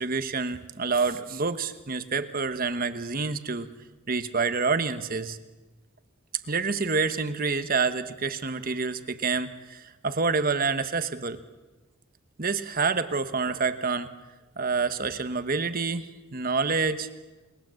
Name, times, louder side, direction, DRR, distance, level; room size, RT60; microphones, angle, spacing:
voice 1, 0.0-3.7 4.1-5.4 6.5-11.4 12.4-14.1 14.6-17.1, right 4 dB, 40° right, 10 dB, 1.2 m, -27 dB
29.5 x 20.5 x 7.7 m, 1.2 s
head